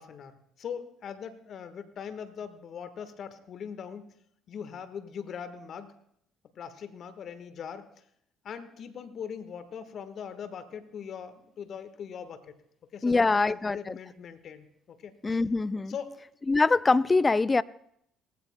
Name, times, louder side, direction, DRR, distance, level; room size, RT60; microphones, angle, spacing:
voice 1, 0.0-4.1 4.5-5.9 6.6-7.9 8.4-12.5 12.9-15.1 15.9-16.2, left 7 dB, 55° left, 1.3 m, -41 dB
voice 2, 13.0-14.0 15.2-16.0 16.5-17.6, left 3 dB, 25° left, 0.4 m, -24 dB
19.0 x 16.0 x 2.2 m
hypercardioid pair, 60°, 0 cm